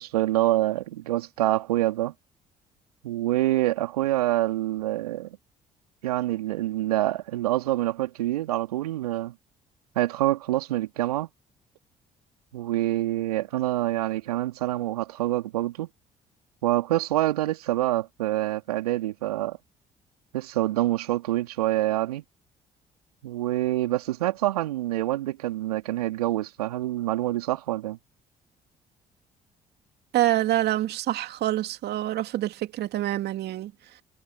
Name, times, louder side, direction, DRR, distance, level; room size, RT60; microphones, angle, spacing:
voice 1, 0.0-2.1 3.0-5.3 6.0-9.3 10.0-11.3 12.5-15.9 16.6-19.6 20.3-22.2 23.2-28.0, right 15 dB, 80° right, 2.6 m, -26 dB
voice 2, 30.1-33.7, right 14 dB, 60° right, 2.6 m, -26 dB
figure-of-eight pair, 50°, 19 cm